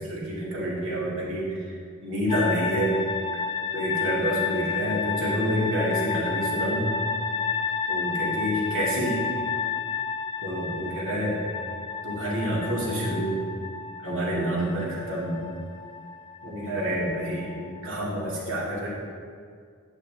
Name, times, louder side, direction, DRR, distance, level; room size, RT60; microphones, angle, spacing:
voice 1, 0.1-1.7 2.0-3.0 3.7-6.9 7.9-9.2 10.4-11.5 12.0-13.4 14.0-15.4 16.4-17.6 17.8-18.9, equal, 60° right, -6 dB, 2.3 m, -28 dB
sound 1, 2.3-18.0, left 5 dB, 20° left, 0.3 m, -31 dB
9.6 x 6.8 x 3.4 m, 2.2 s
head